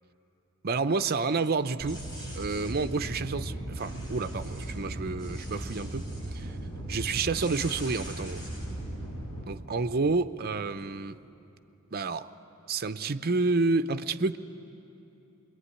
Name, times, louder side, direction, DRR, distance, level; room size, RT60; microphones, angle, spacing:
voice 1, 0.6-2.0 2.4-6.6 6.9-8.4 9.5-11.2 11.9-12.3 12.7-14.4, right 3 dB, 45° right, 0.7 m, -29 dB
sound 1, 1.8-9.4, right 1 dB, 20° left, 6.8 m, -37 dB
26.0 x 22.0 x 9.8 m
head